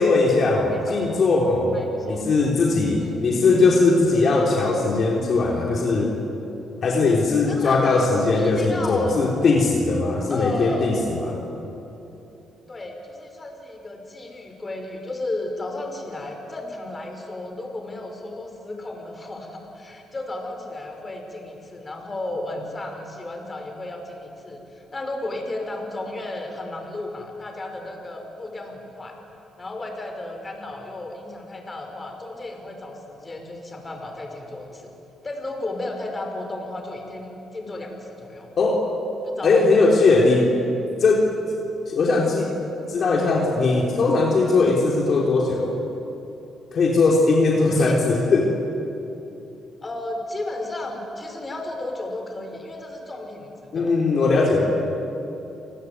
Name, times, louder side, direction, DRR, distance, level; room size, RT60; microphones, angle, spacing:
voice 1, 0.0-1.8 2.1-6.1 6.8-11.4 38.6-38.8 39.4-40.4 41.0-41.3 41.9-42.5 42.9-45.7 46.7-48.5 53.7-54.6, left 3 dB, 50° left, -1 dB, 3.6 m, -19 dB
voice 2, 0.7-1.3 1.7-2.2 3.0-3.2 7.5-9.2 10.3-11.0 12.7-29.2 29.6-34.9 35.2-38.5 39.2-40.2 47.8-48.0 49.8-53.9, left 2 dB, 25° left, 3 dB, 5.6 m, -34 dB
29.0 x 19.5 x 9.6 m, 3.0 s
cardioid pair, 90°, 0 cm